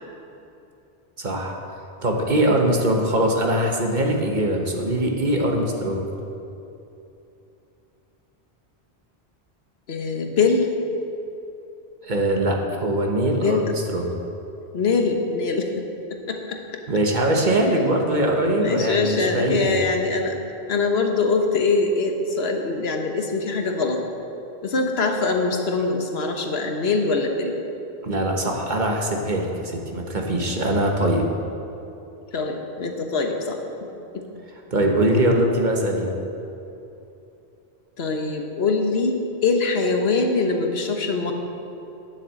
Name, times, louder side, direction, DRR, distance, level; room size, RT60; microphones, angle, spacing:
voice 1, 1.2-1.6 2.0-6.1 12.0-14.2 16.9-19.8 28.0-31.3 34.7-36.1, right 1 dB, 45° right, 1 dB, 1.3 m, -22 dB
voice 2, 9.9-10.7 13.3-13.7 14.7-15.8 16.1-16.6 18.6-20.4 20.7-24.0 24.6-27.5 32.3-33.6 34.1-34.2 34.9-35.0 38.0-41.3, left 4 dB, 70° left, 3 dB, 1.3 m, -23 dB
10.0 x 7.3 x 7.7 m, 2.8 s
omnidirectional pair, 1.1 m